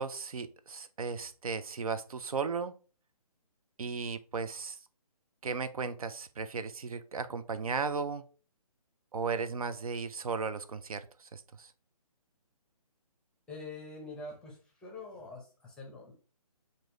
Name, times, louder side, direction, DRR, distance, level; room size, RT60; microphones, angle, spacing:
voice 1, 0.0-2.8 3.8-4.8 5.4-8.2 9.1-11.7, right 5 dB, 65° right, 12 dB, 0.4 m, -36 dB
voice 2, 13.5-16.1, left 3 dB, 5° left, -1 dB, 0.6 m, -45 dB
6.0 x 2.6 x 3.0 m, 0.37 s
figure-of-eight pair, 145°, 20 cm